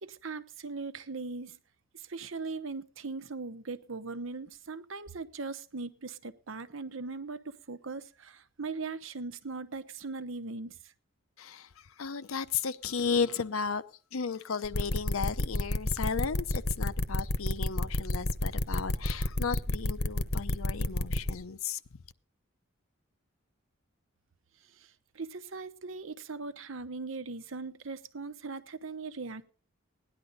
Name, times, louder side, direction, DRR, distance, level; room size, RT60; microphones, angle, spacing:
voice 1, 0.0-1.6 1.9-10.9 24.6-29.4, right 4 dB, 70° right, 0.9 m, -40 dB
voice 2, 12.0-13.8 14.1-21.8, left 5 dB, 85° left, 0.7 m, -34 dB
sound 1, 14.6-21.3, left 1 dB, 50° left, 0.9 m, -29 dB
17.5 x 10.5 x 4.1 m
head